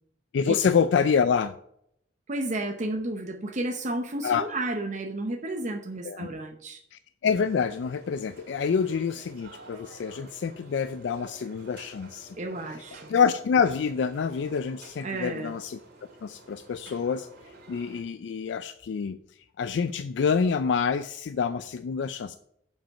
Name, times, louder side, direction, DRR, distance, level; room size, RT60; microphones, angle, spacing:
voice 1, 0.3-1.5 4.2-4.5 6.0-6.3 6.9-12.4 13.1-15.8 16.2-17.3 17.7-19.2 19.6-22.4, left 6 dB, 85° left, 12 dB, 0.4 m, -27 dB
voice 2, 2.3-6.8 12.4-13.1 15.0-15.5, right 2 dB, 45° right, 4 dB, 0.7 m, -32 dB
sound 1, 7.3-18.0, right 2 dB, 65° right, 2.3 m, -50 dB
7.3 x 5.2 x 5.7 m, 0.72 s
head